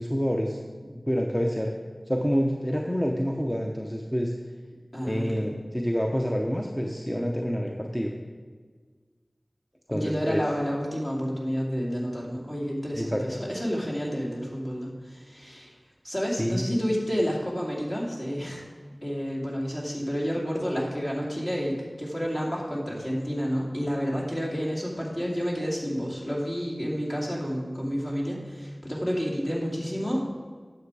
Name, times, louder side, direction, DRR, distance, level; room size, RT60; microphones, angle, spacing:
voice 1, 0.0-1.7 2.1-4.3 5.0-8.1 9.9-10.4 12.9-13.4 16.4-16.6, equal, 5° left, 1 dB, 0.7 m, -27 dB
voice 2, 4.9-5.4 9.9-15.7 16.0-18.7 19.0-30.2, equal, 30° left, -3 dB, 2.4 m, -30 dB
9.3 x 7.0 x 4.8 m, 1.5 s
wide cardioid pair, 55°, 0 cm